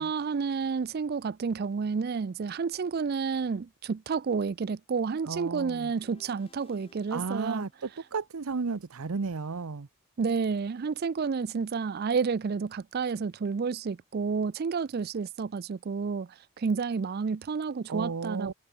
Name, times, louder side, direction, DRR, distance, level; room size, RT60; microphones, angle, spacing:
voice 1, 0.0-7.7 10.2-18.5, right 5 dB, 45° right, 0.4 m, -30 dB
voice 2, 5.2-5.9 7.1-9.9 17.9-18.5, right 4 dB, 85° right, 0.7 m, -33 dB
sound 1, 5.6-8.9, left 2 dB, 25° left, 2.8 m, -61 dB
head